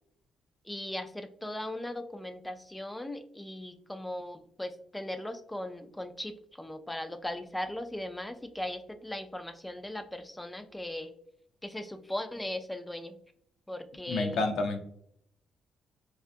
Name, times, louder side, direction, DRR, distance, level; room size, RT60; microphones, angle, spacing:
voice 1, 0.6-11.1 11.6-13.2 13.7-14.5, left 1 dB, 10° left, 8 dB, 0.4 m, -38 dB
voice 2, 14.1-14.8, left 3 dB, 75° left, 5 dB, 0.6 m, -29 dB
4.5 x 2.3 x 2.5 m, 0.69 s
cardioid pair, 90°, 0 cm